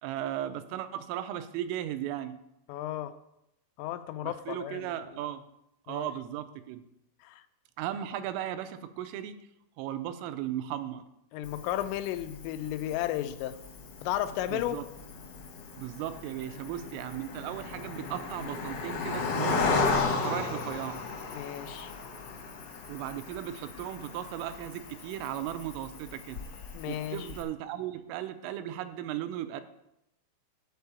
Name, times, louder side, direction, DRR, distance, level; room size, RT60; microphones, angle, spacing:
voice 1, 0.0-2.4 4.2-5.4 5.9-6.8 7.8-9.5 9.8-11.1 14.5-14.8 15.8-19.7 20.2-21.0 22.9-26.4 26.9-29.6, right 11 dB, 85° right, 10 dB, 3.3 m, -36 dB
voice 2, 2.7-3.1 3.8-4.9 5.9-6.1 7.2-7.4 11.3-13.6 14.0-14.8 21.3-22.0 26.7-27.3, left 13 dB, 85° left, 10 dB, 3.1 m, -34 dB
Cricket, 11.4-27.4, left 4 dB, 65° left, 1.6 m, -35 dB
12.5 x 4.6 x 8.2 m, 0.84 s
omnidirectional pair, 5.7 m